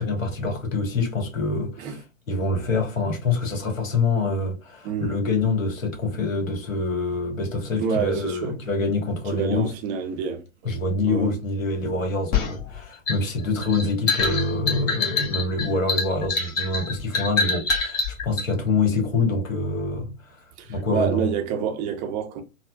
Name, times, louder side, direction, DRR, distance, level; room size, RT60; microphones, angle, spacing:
voice 1, 0.0-2.0 2.3-9.7 10.6-20.4 20.7-21.3, left 3 dB, 70° left, 1.5 m, -25 dB
voice 2, 4.8-5.2 7.8-8.6 9.3-10.4 11.0-11.3 20.6-22.4, right 6 dB, 20° right, 0.4 m, -28 dB
sound 1, 12.3-18.5, left 4 dB, 40° left, 1.2 m, -25 dB
4.1 x 2.1 x 2.3 m
figure-of-eight pair, 105°, 41 cm